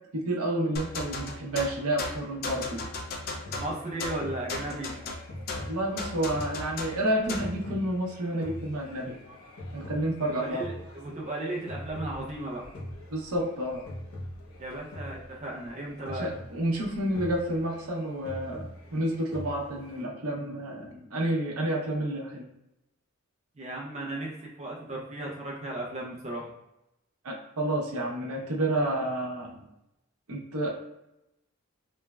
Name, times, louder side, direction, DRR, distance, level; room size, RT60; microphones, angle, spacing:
voice 1, 0.1-2.9 5.7-9.1 9.7-10.7 13.1-13.9 16.0-22.5 27.2-29.6 30.3-30.7, right 1 dB, 85° right, -1 dB, 0.7 m, -30 dB
sound 1, 0.8-7.6, left 3 dB, 45° left, 0.3 m, -36 dB
sound 2, 3.4-20.0, left 1 dB, 70° left, 0.7 m, -43 dB
voice 2, 3.6-4.9 10.3-12.6 14.6-16.3 23.6-26.5, right 1 dB, 30° right, -3 dB, 0.5 m, -35 dB
3.2 x 2.0 x 2.2 m, 0.89 s
head